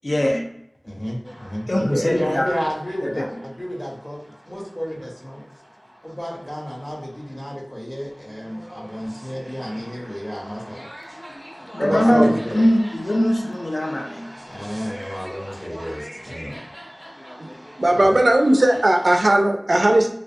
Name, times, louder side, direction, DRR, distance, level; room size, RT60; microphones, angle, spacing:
voice 1, 0.0-0.5 1.7-2.5 3.2-3.3 11.7-14.3, equal, 75° left, 1 dB, 0.4 m, -21 dB
voice 2, 0.8-4.2 4.5-5.4 6.0-10.9 11.8-12.6 14.5-16.6 17.9-18.2, equal, 30° left, -4 dB, 1.2 m, -31 dB
sound 1, 1.2-19.1, equal, 5° left, 0.5 m, -42 dB
voice 3, 11.8-12.3 17.4-17.5 17.8-20.1, right 1 dB, 80° right, 3 dB, 0.4 m, -17 dB
3.0 x 2.5 x 2.4 m, 0.78 s
wide cardioid pair, 45°, 0 cm